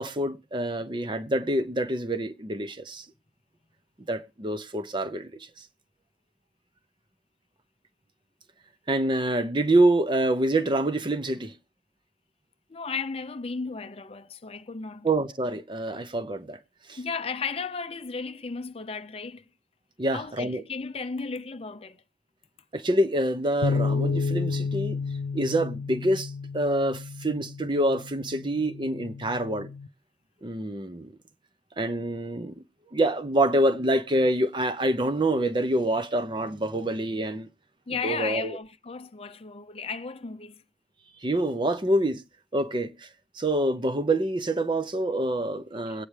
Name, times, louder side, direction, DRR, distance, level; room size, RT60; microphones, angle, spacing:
voice 1, 0.0-3.0 4.1-5.5 8.9-11.5 15.0-16.6 16.9-17.0 20.0-20.6 22.7-25.0 25.3-29.7 30.4-31.1 31.8-32.6 32.9-37.5 38.0-38.6 41.2-42.2 42.5-43.1 43.4-46.1, right 1 dB, 25° right, 0.7 m, -26 dB
voice 2, 12.7-15.1 17.0-19.4 20.1-22.0 37.9-40.6 45.9-46.0, left 5 dB, 35° left, 0.6 m, -34 dB
sound 1, 23.6-29.9, left 4 dB, 85° left, 0.7 m, -31 dB
22.0 x 8.5 x 3.2 m
head